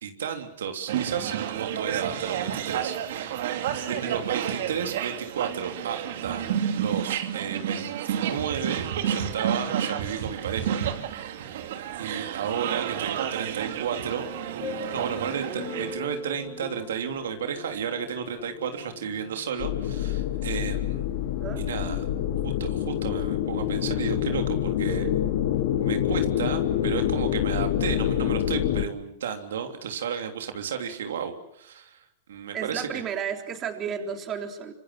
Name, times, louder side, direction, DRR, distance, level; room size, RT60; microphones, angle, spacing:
voice 1, 0.0-3.5 3.9-10.8 11.9-14.3 14.9-21.1 21.6-22.0 22.4-25.0 25.8-33.0, right 7 dB, 90° right, 5 dB, 3.3 m, -33 dB
sound 1, 0.9-16.0, right 9 dB, 70° right, 2.8 m, -30 dB
voice 2, 3.9-4.2 15.5-16.0 21.4-22.3 24.8-25.3 26.0-26.1 32.5-34.7, right 7 dB, 30° right, 5 dB, 3.7 m, -35 dB
sound 2, 14.2-21.8, left 5 dB, 35° left, 4.6 m, -41 dB
sound 3, 19.6-28.9, left 11 dB, 65° left, 2.3 m, -26 dB
26.0 x 26.0 x 7.7 m, 0.73 s
supercardioid pair, 140°, 0 cm